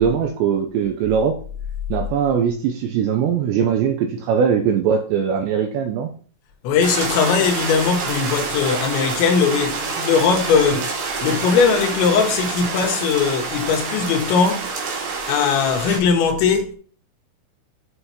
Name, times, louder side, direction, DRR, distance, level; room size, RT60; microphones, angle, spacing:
voice 1, 0.0-1.3 1.9-6.1, right 7 dB, 90° right, 2.6 m, -20 dB
voice 2, 6.6-10.9 11.2-14.7 15.3-16.8, left 6 dB, 75° left, 3.2 m, -19 dB
sound 1, 6.8-16.0, right 4 dB, 65° right, 3.7 m, -27 dB
8.0 x 5.6 x 2.9 m
omnidirectional pair, 5.7 m